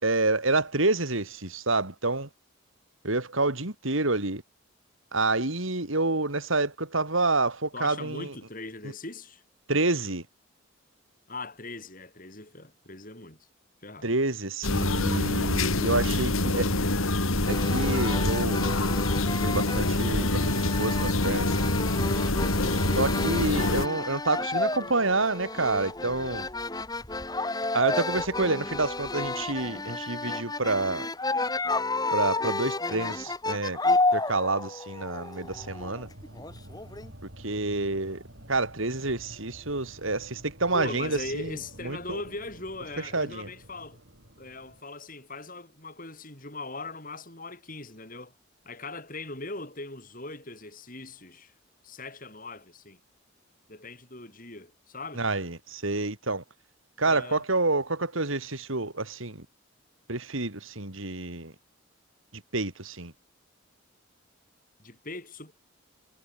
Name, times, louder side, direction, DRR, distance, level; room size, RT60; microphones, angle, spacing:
voice 1, 0.0-2.3 3.0-4.4 5.1-8.3 9.7-10.2 14.0-16.7 17.5-18.7 19.4-21.7 22.9-26.5 27.7-31.1 32.1-33.8 34.1-36.1 37.4-38.2 38.5-41.5 41.8-42.2 43.1-43.5 55.1-56.4 57.0-59.4 60.1-61.5 62.3-63.1, right 3 dB, 75° right, 3.4 m, -28 dB
voice 2, 7.7-9.4 11.3-13.5 13.8-14.1 40.7-44.0 44.4-48.3 48.6-51.5 51.8-53.0 53.7-55.3 57.0-57.4 64.8-65.5, left 2 dB, 40° left, 7.5 m, -40 dB
sound 1, 14.6-23.9, left 2 dB, 85° left, 2.8 m, -26 dB
sound 2, 17.5-37.1, left 2 dB, 20° left, 2.4 m, -31 dB
sound 3, 35.4-44.8, right 1 dB, 55° right, 7.0 m, -49 dB
head